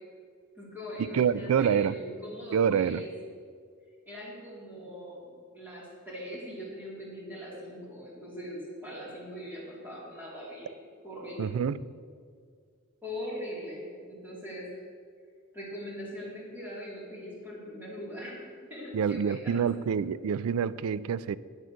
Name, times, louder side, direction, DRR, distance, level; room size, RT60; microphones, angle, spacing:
voice 1, 0.5-3.1 4.1-10.7 11.0-11.6 13.0-14.8 15.5-19.6, equal, 10° right, -6 dB, 3.2 m, -41 dB
voice 2, 1.1-2.0 2.5-3.0 11.4-11.8 18.9-21.4, right 7 dB, 90° right, 18 dB, 0.4 m, -27 dB
8.9 x 7.9 x 6.4 m, 2.1 s
head